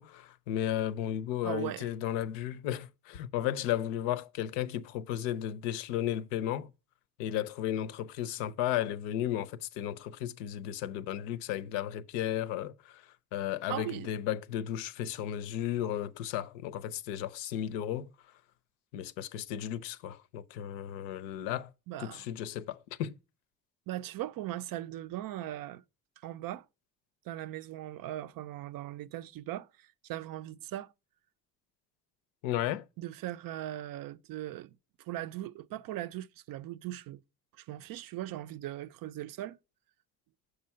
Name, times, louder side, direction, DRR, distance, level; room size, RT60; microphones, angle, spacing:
voice 1, 0.0-6.7 7.2-13.0 13.3-18.1 18.9-21.7 22.0-23.1 32.4-32.8, left 11 dB, 75° left, 0.6 m, -34 dB
voice 2, 1.4-1.9 13.7-14.1 21.9-22.3 23.9-25.8 26.2-26.7 27.3-30.9 33.0-37.2 37.5-39.6, right 13 dB, 50° right, 0.5 m, -39 dB
6.7 x 4.8 x 5.4 m
hypercardioid pair, 40°, 45 cm